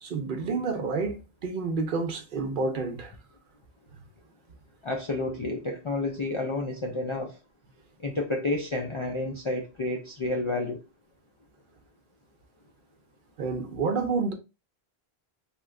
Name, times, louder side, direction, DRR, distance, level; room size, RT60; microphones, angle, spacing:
voice 1, 0.0-3.1 13.4-14.3, right 4 dB, 60° right, 0.6 m, -29 dB
voice 2, 4.8-7.4 8.0-10.8, left 2 dB, 50° left, 0.3 m, -30 dB
2.9 x 2.1 x 3.5 m
omnidirectional pair, 1.1 m